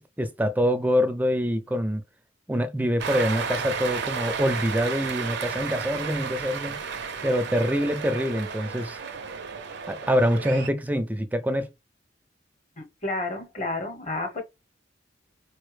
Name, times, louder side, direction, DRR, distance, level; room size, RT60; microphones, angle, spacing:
voice 1, 0.0-2.0 2.5-6.8 7.2-9.0 9.9-11.7, equal, 10° right, 0.4 m, -25 dB
Cheering, 3.0-10.7, right 6 dB, 60° right, 0.5 m, -33 dB
voice 2, 12.8-14.4, left 2 dB, 35° left, 0.9 m, -31 dB
4.3 x 2.1 x 3.2 m
head